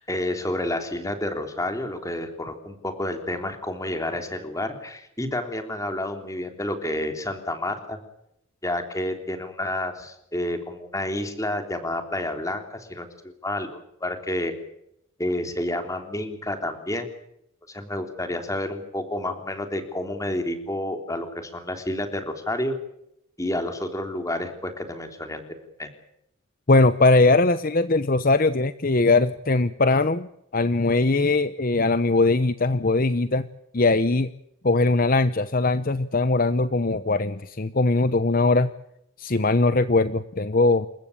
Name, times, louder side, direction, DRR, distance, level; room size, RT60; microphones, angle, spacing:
voice 1, 0.0-8.0 8.6-14.5 15.2-17.1 17.7-22.8 23.4-25.4 25.8-25.9, left 1 dB, 15° left, 6 dB, 3.4 m, -30 dB
voice 2, 26.7-30.3 30.5-33.5 33.7-34.3 34.6-38.7 39.2-40.9, left 3 dB, 45° left, 13 dB, 0.8 m, -20 dB
28.5 x 15.5 x 8.6 m, 0.79 s
head